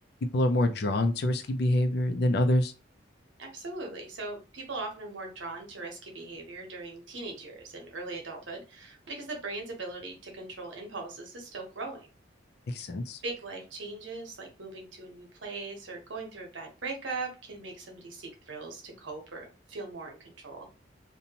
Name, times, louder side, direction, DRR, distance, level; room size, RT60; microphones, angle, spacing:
voice 1, 0.3-2.7 12.7-13.2, left 1 dB, 55° left, 7 dB, 0.4 m, -26 dB
voice 2, 3.4-12.1 13.2-20.7, right 3 dB, 75° right, 2 dB, 0.9 m, -40 dB
2.6 x 2.2 x 2.8 m, 0.32 s
head